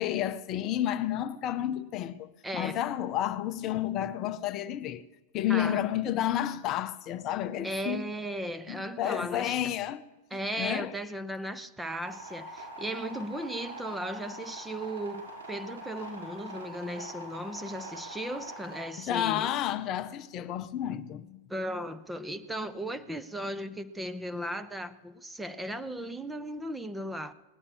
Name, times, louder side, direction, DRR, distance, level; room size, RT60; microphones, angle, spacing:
voice 1, 0.0-5.0 5.3-8.1 8.7-10.0 10.6-10.9 19.0-21.4, left 11 dB, 35° left, 0.6 m, -31 dB
voice 2, 2.4-2.8 5.5-5.8 7.6-9.5 10.3-19.5 21.5-27.3, right 1 dB, 5° right, 0.7 m, -36 dB
sound 1, 12.0-18.8, right 1 dB, 75° right, 5.1 m, -43 dB
18.0 x 9.8 x 6.5 m
figure-of-eight pair, 90°, 0 cm